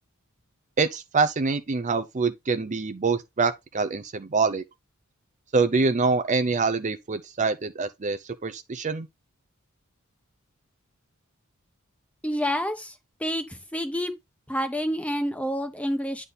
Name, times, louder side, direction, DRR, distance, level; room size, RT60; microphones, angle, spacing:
voice 1, 0.8-4.6 5.5-9.1, right 4 dB, 35° right, 0.6 m, -25 dB
voice 2, 12.2-14.1 14.5-16.3, equal, 5° left, 1.0 m, -28 dB
9.6 x 3.6 x 4.0 m
head